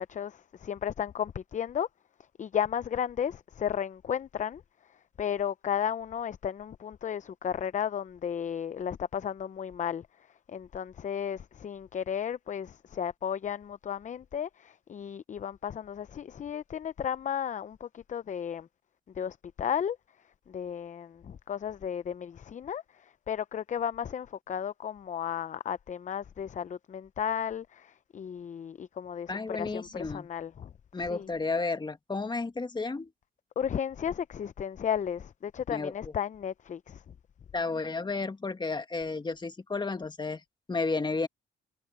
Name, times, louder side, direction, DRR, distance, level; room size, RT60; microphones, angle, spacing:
voice 1, 0.0-1.9 2.4-18.7 19.1-20.0 20.5-30.7 31.0-31.3 33.6-37.0, left 8 dB, 40° left, 0.6 m, -34 dB
voice 2, 29.3-30.3 30.9-33.1 35.7-35.9 37.5-40.4 40.7-41.3, left 3 dB, 20° left, 1.9 m, -32 dB
cardioid pair, 90°, 20 cm